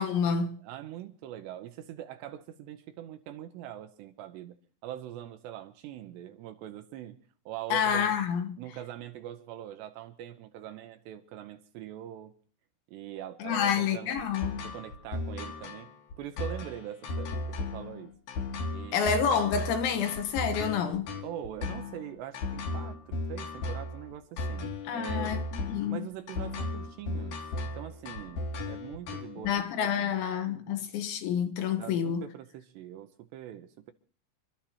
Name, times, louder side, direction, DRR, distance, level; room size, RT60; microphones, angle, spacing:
voice 1, 0.0-0.6 7.7-8.6 13.4-14.6 18.9-21.1 24.9-26.0 29.4-32.3, left 7 dB, 80° left, 3.6 m, -28 dB
voice 2, 0.6-4.5 4.8-7.2 7.5-8.1 8.6-12.3 12.9-14.3 14.6-15.9 16.2-18.1 18.7-19.1 21.2-25.3 25.9-29.6 30.0-30.1 30.7-30.8 31.8-33.9, right 12 dB, 80° right, 2.8 m, -42 dB
sound 1, 13.6-29.5, left 2 dB, 60° left, 3.0 m, -36 dB
29.5 x 12.5 x 2.9 m
omnidirectional pair, 5.5 m